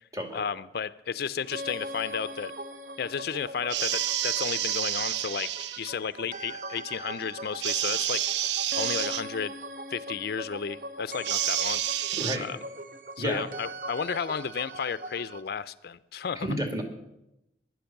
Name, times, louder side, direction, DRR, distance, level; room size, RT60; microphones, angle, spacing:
voice 1, 0.3-2.5 3.0-5.5 5.8-8.2 8.7-9.5 9.9-11.8 12.4-12.6 13.2-16.5, left 6 dB, 60° left, 15 dB, 0.4 m, -33 dB
sound 1, 1.5-15.4, right 1 dB, 50° right, 0.8 m, -40 dB
sound 2, 3.7-5.9 7.6-9.2 11.2-12.4, right 12 dB, 70° right, 0.4 m, -29 dB
voice 2, 12.2-12.5 13.2-13.4 16.4-16.8, equal, 20° right, 3 dB, 2.2 m, -31 dB
15.5 x 11.5 x 5.9 m, 0.87 s
head